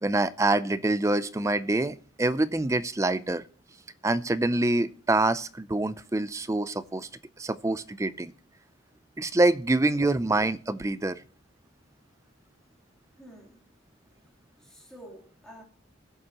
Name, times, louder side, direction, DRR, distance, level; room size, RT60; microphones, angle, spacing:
voice 1, 0.0-3.4 4.0-7.1 7.4-8.3 9.2-11.2, right 2 dB, 15° right, 0.4 m, -26 dB
voice 2, 13.2-13.6 14.6-15.6, equal, 5° left, 3.1 m, -49 dB
20.0 x 7.6 x 2.9 m
head